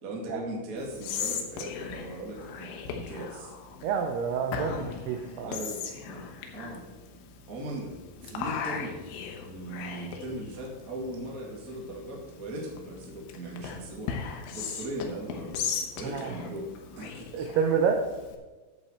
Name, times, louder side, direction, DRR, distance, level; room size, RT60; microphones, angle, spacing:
voice 1, 0.0-3.5 5.4-7.9 8.2-8.9 9.4-15.6 15.9-16.7 16.9-17.5, right 1 dB, 55° right, -2 dB, 0.9 m, -39 dB
Whispering, 0.8-18.4, left 6 dB, 85° left, 3.7 m, -38 dB
voice 2, 3.8-5.5 16.1-16.3 17.3-18.0, right 6 dB, 85° right, 4 dB, 2.3 m, -28 dB
11.0 x 7.9 x 4.4 m, 1.2 s
omnidirectional pair, 5.6 m